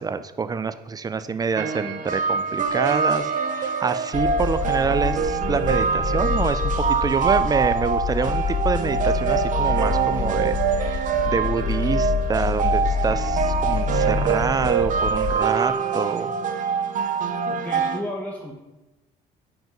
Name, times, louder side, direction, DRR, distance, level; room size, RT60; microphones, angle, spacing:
voice 1, 0.0-3.3 3.6-16.3, right 5 dB, 20° right, 12 dB, 0.4 m, -26 dB
sound 1, 1.6-18.0, right 6 dB, 50° right, 0.8 m, -24 dB
sound 2, 4.1-15.4, left 7 dB, 45° left, 0.4 m, -27 dB
voice 2, 17.5-18.5, left 1 dB, 10° left, -2 dB, 1.0 m, -33 dB
6.1 x 5.2 x 5.1 m, 1.0 s
cardioid pair, 110°, 17 cm